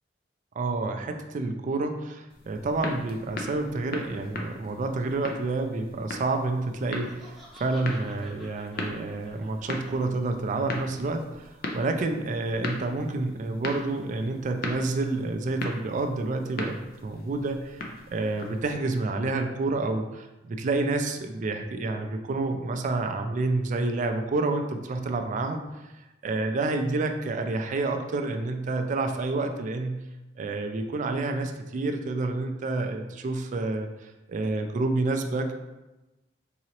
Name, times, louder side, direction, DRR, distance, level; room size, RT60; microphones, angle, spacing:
voice 1, 0.6-25.9 26.2-30.0 30.4-35.5, right 3 dB, 45° right, 5 dB, 0.3 m, -29 dB
sound 1, 2.3-18.8, left 2 dB, 55° left, 0.5 m, -39 dB
Laughter, 6.9-10.0, equal, ahead, 0.6 m, -50 dB
3.9 x 2.8 x 2.9 m, 1.0 s
head